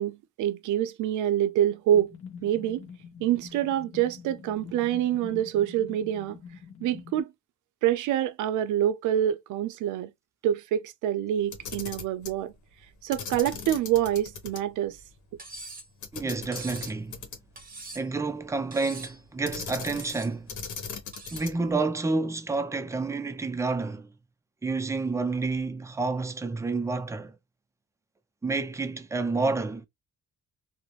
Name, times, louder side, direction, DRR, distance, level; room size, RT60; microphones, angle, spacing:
voice 1, 0.0-2.1 2.4-2.8 3.2-6.4 6.8-7.3 7.8-10.1 10.4-12.5 13.0-15.0, right 11 dB, 75° right, 0.5 m, -26 dB
sound 1, 1.9-7.2, left 7 dB, 45° left, 0.9 m, -45 dB
Camera, 11.4-12.4 13.1-14.6 14.9-15.0 16.0-17.6 19.4-20.2 20.5-21.7, left 5 dB, 75° left, 0.9 m, -38 dB
Cutlery silverware, 15.4-15.9 16.5-17.0 17.6-18.2 18.7-19.2 19.8-20.3 21.1-21.6, right 2 dB, 30° right, 0.8 m, -43 dB
voice 2, 16.1-17.2 17.9-20.5 21.3-24.1 24.6-27.4 28.4-29.9, right 3 dB, 10° right, 0.4 m, -29 dB
2.4 x 2.1 x 3.0 m
cardioid pair, 90°, 30 cm